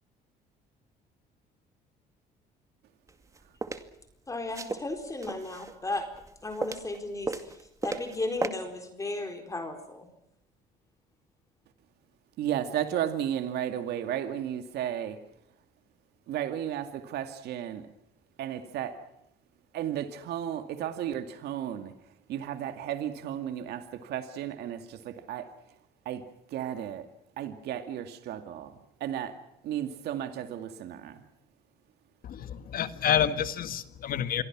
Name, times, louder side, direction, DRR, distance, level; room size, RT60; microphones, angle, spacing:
sound 1, 3.1-3.8 4.5-5.8 6.1-7.0 7.2-8.2 8.4-8.5, right 3 dB, 20° right, 2.2 m, -34 dB
voice 1, 4.3-6.0 6.4-7.5 7.8-10.1, left 2 dB, 20° left, 5 dB, 4.2 m, -35 dB
voice 2, 12.4-15.2 16.3-17.9 18.4-19.0 19.7-21.9 22.3-25.5 26.1-26.2 26.5-27.1 27.4-29.4 29.6-31.2, right 10 dB, 75° right, 7 dB, 2.4 m, -34 dB
voice 3, 32.2-34.4, left 9 dB, 60° left, 11 dB, 1.8 m, -28 dB
27.5 x 23.5 x 6.2 m, 0.81 s
cardioid pair, 110°, 17 cm